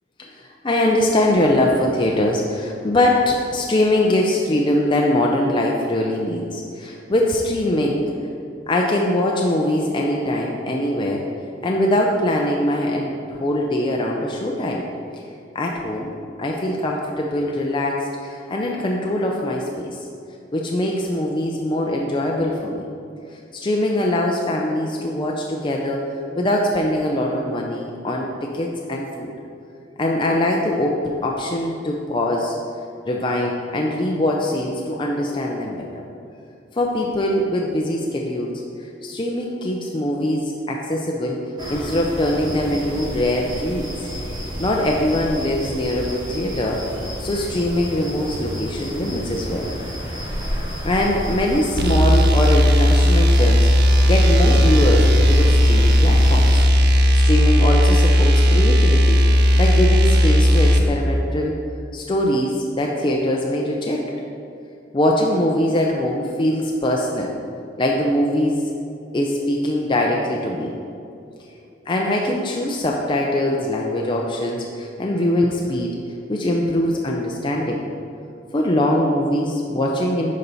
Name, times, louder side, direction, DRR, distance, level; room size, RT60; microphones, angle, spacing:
voice 1, 0.2-8.0 8.7-11.2 11.6-14.8 15.5-16.1 16.4-20.1 20.5-22.9 23.3-26.1 26.4-29.3 30.0-32.5 33.1-36.1 36.7-41.4 41.7-43.9 44.6-46.8 47.2-49.7 50.8-56.5 57.1-59.2 59.6-61.6 61.9-64.1 64.9-67.3 67.8-68.7 69.1-70.7 71.9-76.0 76.3-77.8 78.5-80.4, left 1 dB, 25° left, -1 dB, 0.5 m, -22 dB
sound 1, 41.6-56.6, equal, 25° right, 1.7 m, -30 dB
sound 2, 51.8-60.9, equal, 60° right, 0.6 m, -15 dB
11.0 x 4.4 x 4.0 m, 2.7 s
head